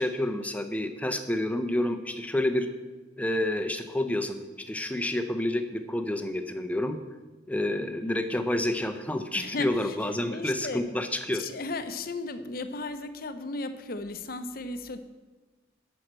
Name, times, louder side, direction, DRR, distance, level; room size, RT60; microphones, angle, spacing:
voice 1, 0.0-2.7 3.2-4.4 4.7-7.0 7.5-11.4, left 1 dB, 5° left, 7 dB, 0.6 m, -29 dB
voice 2, 9.3-10.9 11.4-15.0, left 2 dB, 50° left, 9 dB, 0.7 m, -35 dB
8.9 x 6.4 x 7.4 m, 1.2 s
head